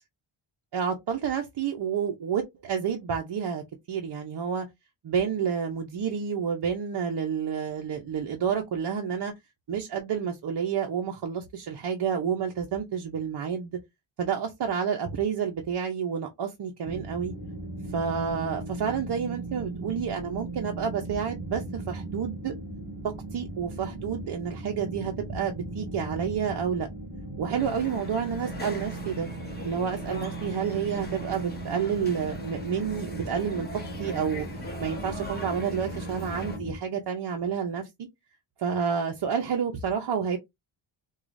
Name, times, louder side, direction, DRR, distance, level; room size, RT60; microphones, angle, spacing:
voice 1, 0.7-3.6 3.9-4.7 5.0-9.3 9.7-13.8 14.2-17.3 17.9-22.5 23.0-26.9 27.4-29.3 29.6-33.7 34.0-34.5 34.8-37.9 38.6-40.4, right 7 dB, 55° right, 0.7 m, -29 dB
sound 1, 16.8-36.8, right 2 dB, 15° right, 2.2 m, -38 dB
sound 2, 27.5-36.6, left 1 dB, 20° left, 0.9 m, -41 dB
4.7 x 2.3 x 2.5 m
wide cardioid pair, 165°, 49 cm